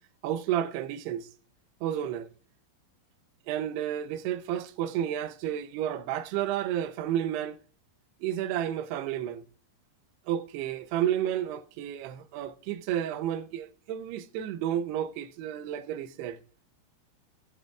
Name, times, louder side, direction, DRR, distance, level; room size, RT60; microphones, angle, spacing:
voice 1, 0.2-1.3 1.8-2.3 3.5-7.6 8.2-9.4 10.3-16.4, right 10 dB, 85° right, 2.8 m, -31 dB
20.5 x 8.1 x 2.4 m
omnidirectional pair, 4.7 m